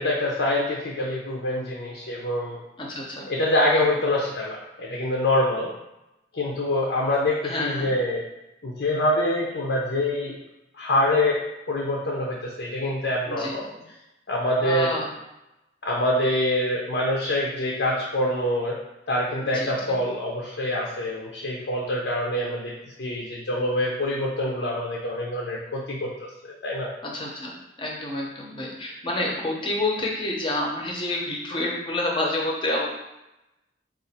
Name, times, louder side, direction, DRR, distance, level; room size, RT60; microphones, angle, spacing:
voice 1, 0.0-2.6 3.3-5.7 6.3-8.2 8.6-10.4 10.8-11.4 11.7-13.6 14.3-14.9 15.8-18.8 19.1-22.7 23.0-26.9, left 1 dB, 75° left, -2 dB, 0.6 m, -25 dB
voice 2, 2.8-3.3 7.4-7.9 13.3-13.8 14.6-15.1 19.4-19.9 27.0-27.5 27.8-32.9, left 1 dB, 30° left, -1 dB, 0.7 m, -28 dB
3.8 x 2.5 x 4.2 m, 0.92 s
head